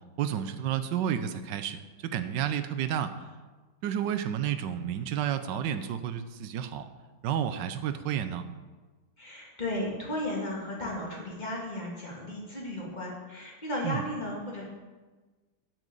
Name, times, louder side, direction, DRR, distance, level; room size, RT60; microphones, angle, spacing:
voice 1, 0.2-3.1 3.8-6.9 7.2-8.4 13.8-14.0, right 9 dB, 70° right, 10 dB, 1.3 m, -31 dB
voice 2, 9.2-14.6, left 1 dB, 20° left, -3 dB, 2.4 m, -35 dB
8.8 x 6.3 x 8.2 m, 1.3 s
omnidirectional pair, 2.1 m